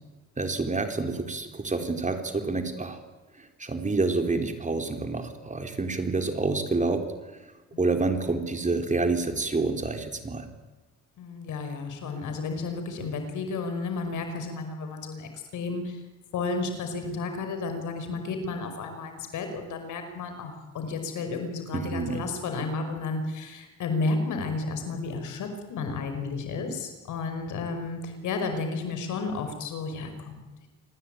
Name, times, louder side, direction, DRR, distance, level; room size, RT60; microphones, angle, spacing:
voice 1, 0.4-3.0 3.4-7.0 7.8-10.5 21.7-22.2, right 3 dB, 25° right, 6 dB, 3.9 m, -28 dB
voice 2, 7.7-8.2 11.2-16.0 16.3-30.7, left 3 dB, 80° left, 7 dB, 5.5 m, -32 dB
26.5 x 19.5 x 9.3 m, 1.2 s
cardioid pair, 90°, 30 cm